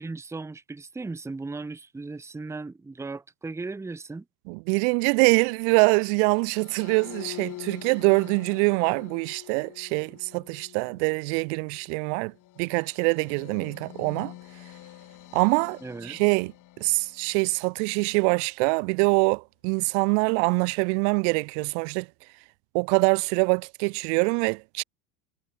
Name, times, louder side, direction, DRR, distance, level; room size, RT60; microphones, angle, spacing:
voice 1, 0.0-4.2 15.8-16.2, right 3 dB, 5° right, 0.8 m, -37 dB
voice 2, 4.5-12.3 12.6-14.3 15.3-16.5 16.8-22.1 22.7-24.8, right 40 dB or more, 50° right, 0.8 m, -24 dB
sound 1, 6.4-17.8, left 16 dB, 45° left, 2.6 m, -46 dB
hypercardioid pair, 80°, 44 cm